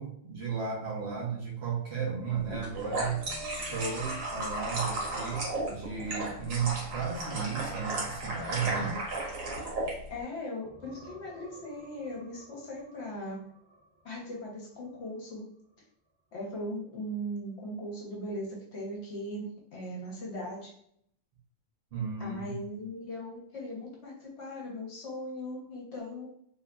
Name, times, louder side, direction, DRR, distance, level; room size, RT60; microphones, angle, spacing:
voice 1, 0.0-9.0 21.9-22.6, right 6 dB, 60° right, -2 dB, 0.8 m, -34 dB
sound 1, 2.5-9.9, right 2 dB, 80° right, 1.2 m, -34 dB
sound 2, 2.8-10.3 10.6-14.5 14.9-15.1 18.4-18.5, right 1 dB, 45° right, 0.3 m, -50 dB
voice 2, 10.1-13.4 14.0-15.5 16.3-20.7 22.2-26.3, equal, 60° left, -3 dB, 1.0 m, -39 dB
2.8 x 2.4 x 2.2 m, 0.69 s
omnidirectional pair, 1.4 m